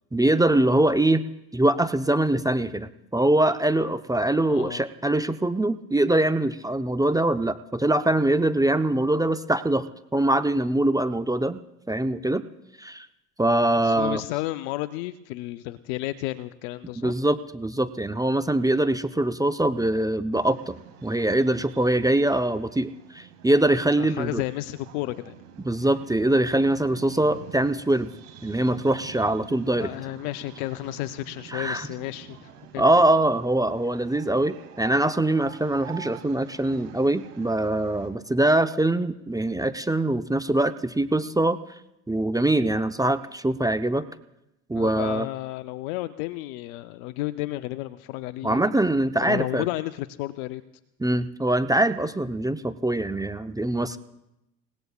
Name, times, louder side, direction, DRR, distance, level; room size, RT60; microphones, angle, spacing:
voice 1, 0.1-1.2 1.5-11.6 11.9-12.4 12.8-13.1 13.4-14.2 17.0-24.4 25.6-28.1 28.4-29.9 31.5-31.9 32.8-41.6 42.1-44.1 44.7-45.3 48.4-49.6 51.0-54.0, right 1 dB, 10° right, 10 dB, 0.7 m, -23 dB
voice 2, 4.5-4.8 13.8-17.1 24.0-25.4 29.8-32.8 44.7-48.6 49.2-50.6, left 17 dB, 70° left, 12 dB, 0.7 m, -32 dB
sound 1, 20.3-38.1, right 8 dB, 80° right, 2.3 m, -46 dB
28.5 x 17.0 x 2.4 m, 0.87 s
hypercardioid pair, 60°, 44 cm